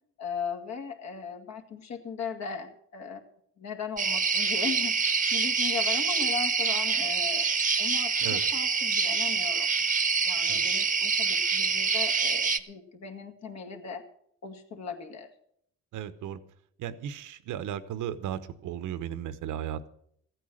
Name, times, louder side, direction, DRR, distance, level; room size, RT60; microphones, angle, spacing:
voice 1, 0.2-3.2 3.6-7.5 7.8-9.7 10.2-14.0 14.4-15.3, left 6 dB, 60° left, 4 dB, 2.3 m, -38 dB
sound 1, 4.0-12.6, right 5 dB, 25° right, 0.8 m, -26 dB
voice 2, 15.9-16.4 16.8-19.9, right 10 dB, 85° right, 13 dB, 1.0 m, -35 dB
15.0 x 9.1 x 6.4 m, 0.69 s
cardioid pair, 90°, 30 cm